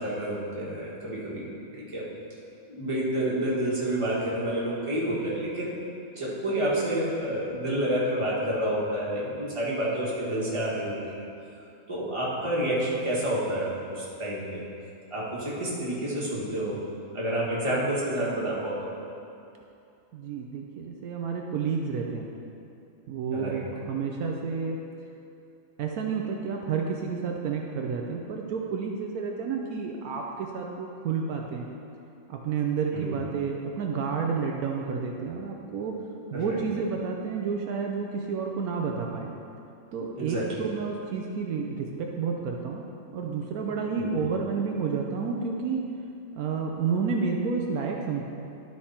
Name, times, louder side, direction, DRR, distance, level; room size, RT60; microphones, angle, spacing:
voice 1, 0.0-1.5 1.7-2.1 2.7-5.7 6.1-11.0 11.9-14.6 15.1-16.8 17.1-18.9 23.3-23.7 32.9-33.2 36.3-36.6 40.0-40.5 44.0-44.2, right 1 dB, 20° right, -7 dB, 1.7 m, -29 dB
voice 2, 20.1-22.3 23.1-24.8 25.8-31.7 32.3-36.0 36.3-39.3 39.9-42.8 43.1-45.8 46.4-48.2, right 5 dB, 75° right, 1 dB, 1.1 m, -30 dB
12.0 x 4.6 x 4.3 m, 2.6 s
omnidirectional pair, 1.6 m